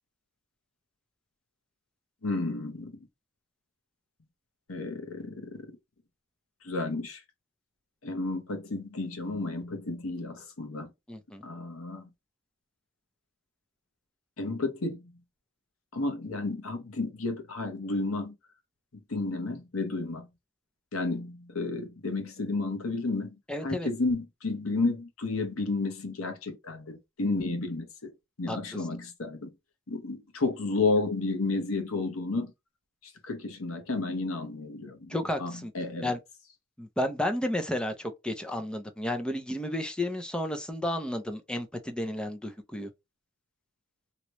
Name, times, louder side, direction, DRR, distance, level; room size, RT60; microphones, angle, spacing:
voice 1, 2.2-3.0 4.7-5.7 6.6-7.2 8.0-10.9 11.4-12.0 14.4-15.0 15.9-18.3 19.1-20.3 20.9-23.3 23.6-28.1 28.4-29.5 29.9-32.5 33.2-36.1, left 3 dB, 85° left, 1.0 m, -32 dB
voice 2, 11.1-11.4 23.5-23.9 28.5-28.6 35.1-35.7 36.0-36.2 36.8-42.9, left 1 dB, 5° left, 0.5 m, -32 dB
3.0 x 2.9 x 3.0 m
head